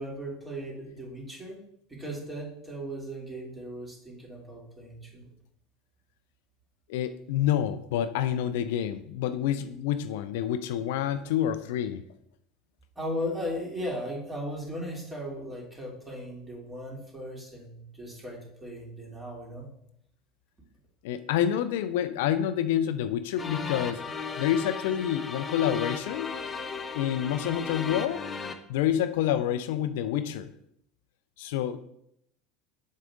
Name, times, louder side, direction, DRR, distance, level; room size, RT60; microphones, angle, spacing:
voice 1, 0.0-1.6 1.9-5.2 12.9-19.7, equal, 20° right, -2 dB, 3.2 m, -37 dB
voice 2, 6.9-12.0 21.0-24.0 24.4-26.3 26.9-28.2 28.7-30.5 31.4-31.8, left 10 dB, 65° left, 11 dB, 0.4 m, -28 dB
sound 1, 23.4-28.5, left 5 dB, 25° left, 0.9 m, -36 dB
7.6 x 6.3 x 3.8 m, 0.74 s
hypercardioid pair, 75°, 0 cm